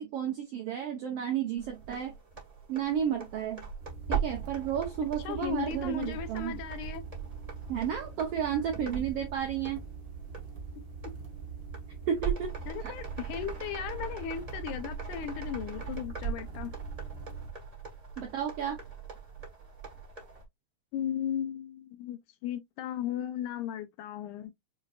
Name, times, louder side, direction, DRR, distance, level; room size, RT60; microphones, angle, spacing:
voice 1, 0.0-2.1 2.7-3.6 4.1-6.6 7.7-9.8 12.1-12.9 18.2-18.8, right 8 dB, 85° right, 1.3 m, -32 dB
sound 1, 1.6-20.4, right 6 dB, 35° right, 0.6 m, -40 dB
sound 2, 3.8-17.5, right 5 dB, 60° right, 1.1 m, -44 dB
voice 2, 5.2-7.1 12.7-16.7 20.9-24.5, left 9 dB, 80° left, 2.1 m, -36 dB
6.4 x 2.5 x 2.4 m
omnidirectional pair, 3.8 m